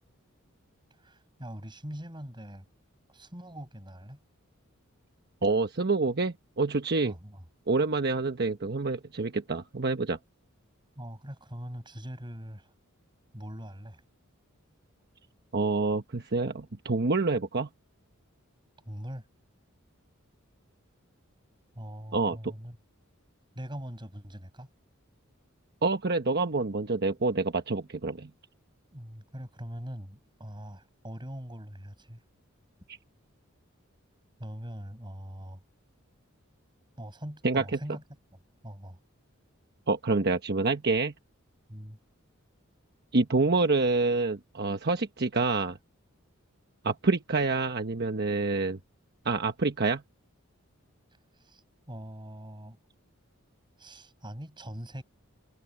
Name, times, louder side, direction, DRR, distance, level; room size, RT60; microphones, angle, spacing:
voice 1, 1.0-2.6 3.1-4.2 7.0-7.4 10.9-12.7 13.3-14.0 18.8-19.2 21.7-22.8 23.5-24.7 28.9-32.2 34.4-35.6 37.0-38.0 38.6-39.0 41.7-42.0 51.3-52.8 53.8-55.0, equal, 20° right, 6.4 m, -42 dB
voice 2, 5.4-7.1 7.7-10.2 15.5-17.7 22.1-22.5 25.8-28.3 37.4-37.6 39.9-41.1 43.1-45.8 46.8-48.8 49.2-50.0, right 3 dB, 50° right, 1.1 m, -27 dB
head